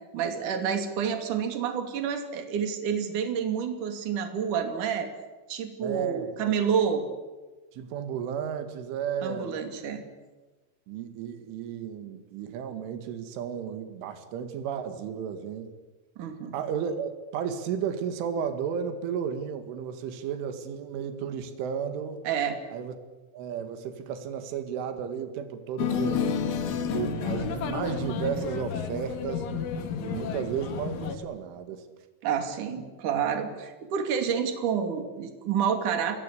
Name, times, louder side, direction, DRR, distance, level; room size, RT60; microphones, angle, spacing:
voice 1, 0.1-5.1 5.5-7.1 9.2-10.0 16.2-16.5 22.2-22.6 32.2-36.2, right 7 dB, 45° right, 6 dB, 3.7 m, -29 dB
voice 2, 5.8-6.4 7.7-9.7 10.9-15.7 16.5-22.2 22.7-23.0 23.3-26.2 26.9-29.5 30.0-31.8, right 7 dB, 80° right, 8 dB, 4.4 m, -33 dB
sound 1, 25.8-31.2, left 6 dB, 80° left, 4.6 m, -31 dB
29.0 x 20.5 x 8.5 m, 1.2 s
omnidirectional pair, 5.5 m